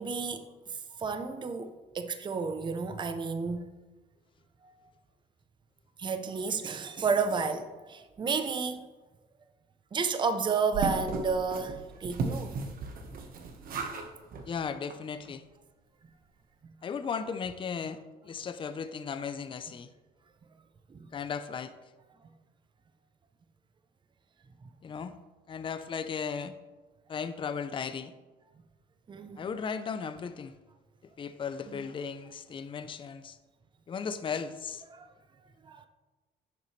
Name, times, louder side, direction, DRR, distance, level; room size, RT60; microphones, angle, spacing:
voice 1, 0.0-3.7 4.6-4.7 6.0-8.9 9.9-12.6 16.6-16.7 20.9-21.1 29.1-29.5 31.7-31.8 34.9-35.1 35.6-35.9, right 5 dB, 25° right, 8 dB, 0.7 m, -32 dB
sound 1, 10.7-14.1 14.3-14.5 14.9-15.0 15.2-15.3, right 4 dB, 60° right, 1.3 m, -35 dB
voice 2, 14.5-15.4 16.8-19.9 21.1-21.7 24.8-25.2 25.5-26.6 27.1-28.1 29.4-30.5 31.2-33.4 33.9-34.8, left 6 dB, 30° left, 10 dB, 0.6 m, -36 dB
10.5 x 7.0 x 3.2 m, 1.2 s
cardioid pair, 110°, 17 cm